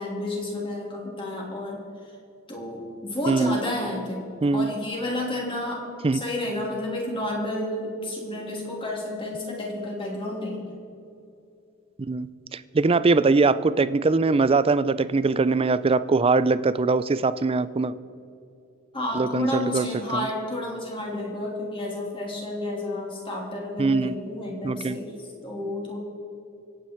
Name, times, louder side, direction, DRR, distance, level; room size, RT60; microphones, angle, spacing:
voice 1, 0.0-1.8 2.5-5.8 6.1-10.6 18.9-25.1 25.4-26.0, left 1 dB, 25° left, -2 dB, 3.1 m, -31 dB
voice 2, 3.3-3.6 4.4-4.7 6.0-6.2 12.1-17.9 19.1-19.9 20.1-20.3 23.8-24.1 24.6-25.0, right 3 dB, 25° right, 15 dB, 0.4 m, -22 dB
24.5 x 9.1 x 4.6 m, 2.7 s
head